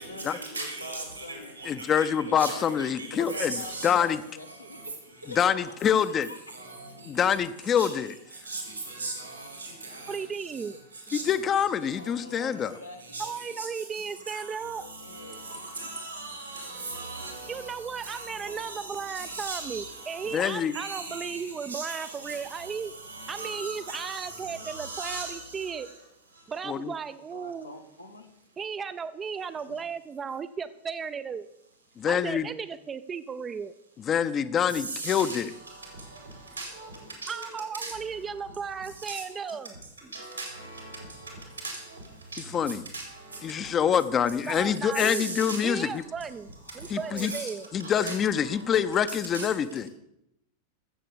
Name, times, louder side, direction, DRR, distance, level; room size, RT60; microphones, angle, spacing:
voice 1, 0.0-1.6 2.3-6.5 6.8-6.9 11.8-13.6 14.6-15.9 27.3-28.3 29.7-29.8 46.7-46.8 47.5-47.7, left 2 dB, 85° left, 2 dB, 1.6 m, -45 dB
voice 2, 0.5-1.0 1.3-1.4 2.0-2.1 2.4-2.6 3.0-3.1 3.3-3.9 7.8-7.9 8.5-8.6 9.0-9.1 11.1-11.2 13.1-13.3 13.6-13.7 15.8-17.4 18.1-18.2 18.6-18.8 19.3-19.9 20.7-21.3 21.7-22.0 23.3-24.2 24.6-25.3 35.0-35.3 36.6-36.9 40.1-40.5 41.6-41.7 42.9-43.0 45.1-45.6 47.2-47.4 48.0-48.1 49.3-49.4, right 3 dB, 85° right, 2 dB, 4.4 m, -36 dB
voice 3, 1.6-3.6 3.8-4.2 5.4-6.3 7.1-8.1 11.1-12.7 20.3-20.7 26.7-26.9 32.0-32.5 34.0-35.5 42.5-42.8 43.4-46.0 46.9-47.3 47.7-49.9, left 8 dB, 25° left, 12 dB, 0.7 m, -25 dB
voice 4, 10.1-10.8 13.2-14.8 17.5-22.9 23.3-25.9 26.5-27.7 28.6-31.5 32.1-33.7 37.3-39.7 44.5-45.2 45.6-47.7, right 6 dB, 20° right, 12 dB, 0.5 m, -35 dB
13.5 x 7.6 x 6.9 m, 0.82 s
figure-of-eight pair, 90°, 0 cm